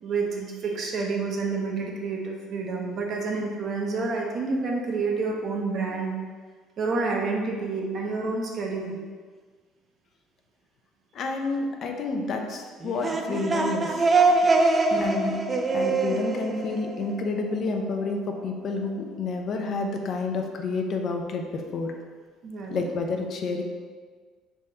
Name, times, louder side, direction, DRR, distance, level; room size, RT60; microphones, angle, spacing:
voice 1, 0.0-6.1 6.8-9.0 12.1-12.3 14.9-15.4 22.4-22.8, right 3 dB, 50° right, -1 dB, 0.8 m, -29 dB
voice 2, 11.1-14.0 15.0-15.3 15.7-21.5 21.7-21.9 22.7-23.6, left 3 dB, 55° left, 3 dB, 0.5 m, -29 dB
sound 1, 12.8-17.5, right 3 dB, 30° right, 0.4 m, -24 dB
3.5 x 2.6 x 4.3 m, 1.5 s
cardioid pair, 100°, 0 cm